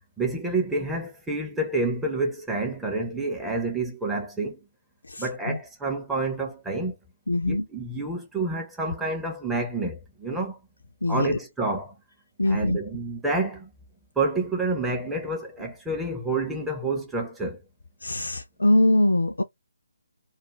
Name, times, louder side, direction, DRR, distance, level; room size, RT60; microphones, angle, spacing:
voice 1, 0.2-4.6 5.2-7.0 7.4-10.6 11.1-12.0 12.5-13.7 14.2-17.6, right 2 dB, 5° right, 0.4 m, -28 dB
voice 2, 5.1-5.6 7.3-7.6 11.0-11.3 12.4-12.8 18.0-19.4, left 1 dB, 70° left, 0.3 m, -23 dB
2.3 x 2.0 x 2.9 m
figure-of-eight pair, 145°, 0 cm